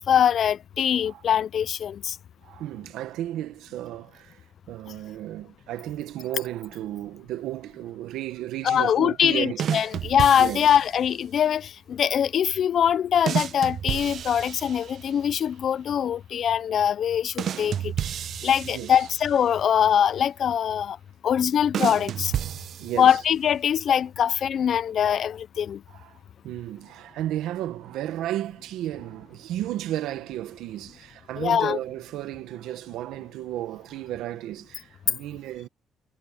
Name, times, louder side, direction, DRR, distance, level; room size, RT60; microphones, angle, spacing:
voice 1, 0.0-2.2 8.6-17.9 18.4-21.0 21.2-22.3 23.0-25.8 31.4-31.8, left 9 dB, 60° left, 0.6 m, -23 dB
voice 2, 2.4-4.4 4.7-9.7 10.4-10.8 17.6-17.8 18.6-18.9 22.8-23.2 25.9-26.2 26.4-35.7, right 13 dB, 90° right, 1.2 m, -33 dB
sound 1, 9.6-11.0 13.3-15.2 17.4-19.5 21.7-23.4, right 9 dB, 65° right, 0.8 m, -31 dB
cardioid pair, 90°, 0 cm